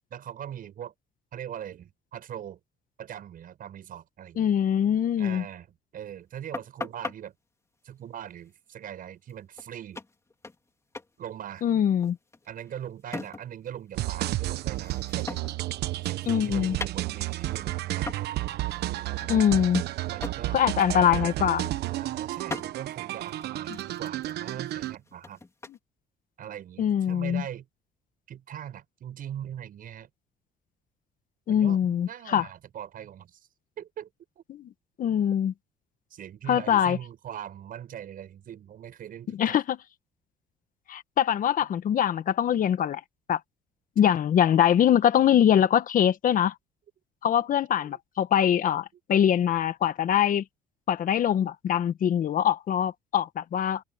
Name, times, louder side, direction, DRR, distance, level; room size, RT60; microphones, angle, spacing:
voice 1, 0.1-0.9 1.3-2.6 3.0-4.5 5.2-5.7 5.9-7.3 7.8-10.0 11.2-11.7 12.5-15.4 16.0-18.1 20.1-20.6 21.9-25.4 26.4-27.7 28.3-30.1 31.5-33.5 33.8-34.1 34.4-34.5 36.1-39.6 44.0-44.1 47.8-48.0, right 10 dB, 55° right, 7.0 m, -41 dB
voice 2, 4.4-5.4 11.6-12.2 16.3-16.8 19.3-19.8 20.5-21.7 26.8-27.4 31.5-32.5 34.5-34.6 35.0-35.5 36.5-37.0 39.4-39.8 40.9-43.0 43.3-43.4 44.0-46.5 47.2-50.4 50.9-53.8, left 9 dB, 55° left, 1.5 m, -23 dB
sound 1, 6.5-7.2 9.3-9.4 9.6-9.7 9.9-10.7 10.9-11.1 11.4-13.7 14.0-15.7 16.0-17.5 18.1-18.3 18.7-18.9 19.2-20.4 20.8-21.0 21.3-21.9 22.5-22.7 23.2-25.8, left 3 dB, 15° left, 3.4 m, -40 dB
sound 2, 14.0-25.0, right 16 dB, 75° right, 1.2 m, -32 dB
cardioid pair, 110°, 17 cm